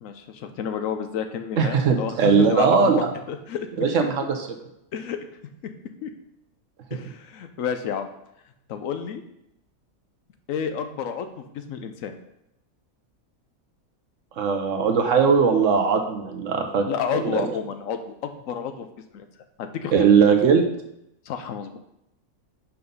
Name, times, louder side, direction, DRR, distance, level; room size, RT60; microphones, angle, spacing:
voice 1, 0.0-3.7 4.0-4.1 4.9-5.2 5.6-5.7 6.0-6.1 6.9-8.1 8.7-9.2 10.5-12.1 16.9-18.9 19.1-19.3 19.6-20.1 21.3-21.8, left 7 dB, 75° left, 8 dB, 1.0 m, -30 dB
voice 2, 1.6-3.1 3.8-4.5 14.4-16.9 17.3-17.4 19.9-20.6, right 6 dB, 65° right, 5 dB, 1.1 m, -19 dB
5.7 x 3.9 x 5.3 m, 0.81 s
omnidirectional pair, 1.5 m